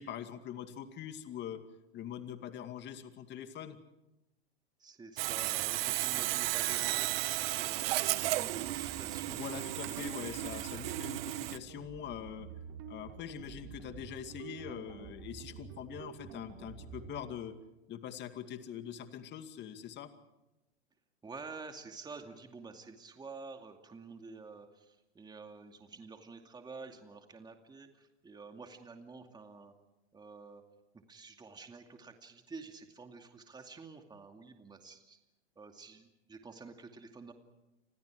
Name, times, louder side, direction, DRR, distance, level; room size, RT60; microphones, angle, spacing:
voice 1, 0.0-1.6 1.9-3.8 9.3-12.5 12.9-17.6 17.9-20.1, left 9 dB, 35° left, 8 dB, 2.3 m, -43 dB
voice 2, 4.8-10.3 21.2-29.7 30.1-30.6 31.1-35.2 35.6-37.3, right 4 dB, 10° right, 5 dB, 2.4 m, -49 dB
Sawing, 5.2-11.6, right 17 dB, 60° right, 1.2 m, -34 dB
sound 1, 8.0-17.2, right 8 dB, 45° right, 3.7 m, -49 dB
29.5 x 26.0 x 4.9 m, 0.96 s
hypercardioid pair, 110°, 33 cm